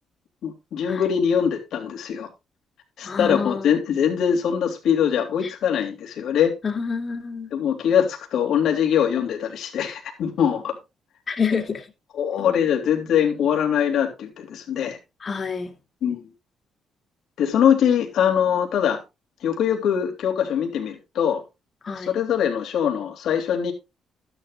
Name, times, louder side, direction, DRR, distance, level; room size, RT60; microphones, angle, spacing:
voice 1, 0.4-2.3 3.0-6.5 7.5-10.8 12.1-15.0 16.0-16.2 17.4-19.0 19.4-21.4 22.0-23.7, left 8 dB, 75° left, 3.3 m, -22 dB
voice 2, 3.0-3.8 5.4-5.5 6.6-7.5 11.3-11.8 12.4-12.5 15.2-15.7 21.8-22.1, left 5 dB, 40° left, 2.7 m, -27 dB
13.0 x 11.0 x 2.6 m
cardioid pair, 90°, 0 cm